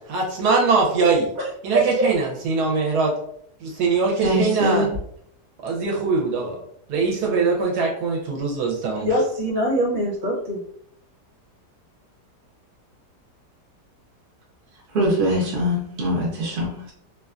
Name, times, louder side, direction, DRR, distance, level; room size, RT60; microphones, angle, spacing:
voice 1, 0.0-1.3 1.6-3.1 3.6-4.9 5.6-6.6 6.9-9.1, right 4 dB, 75° right, -1 dB, 1.1 m, -22 dB
voice 2, 1.7-2.0 9.0-10.6, right 1 dB, 35° right, -4 dB, 1.1 m, -23 dB
voice 3, 4.2-4.9 14.9-16.9, equal, 55° right, -3 dB, 0.8 m, -23 dB
2.7 x 2.2 x 2.3 m, 0.67 s
omnidirectional pair, 1.8 m